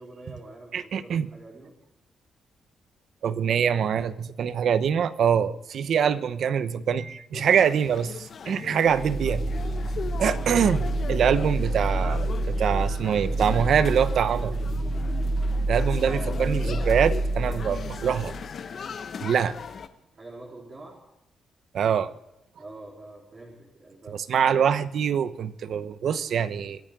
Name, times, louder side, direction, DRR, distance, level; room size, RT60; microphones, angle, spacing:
voice 1, 0.0-1.8 16.0-16.4 20.2-21.0 22.6-24.2, right 2 dB, 30° right, -4 dB, 3.9 m, -45 dB
voice 2, 0.7-1.3 3.2-9.5 10.2-14.5 15.7-18.3 19.2-19.5 21.7-22.1 24.1-26.8, right 7 dB, 65° right, 13 dB, 0.9 m, -24 dB
sound 1, 7.3-19.9, left 6 dB, 50° left, 1.1 m, -39 dB
sound 2, 8.9-18.5, right 2 dB, 15° right, 1.8 m, -28 dB
25.5 x 10.0 x 3.8 m, 0.90 s
cardioid pair, 120°, 0 cm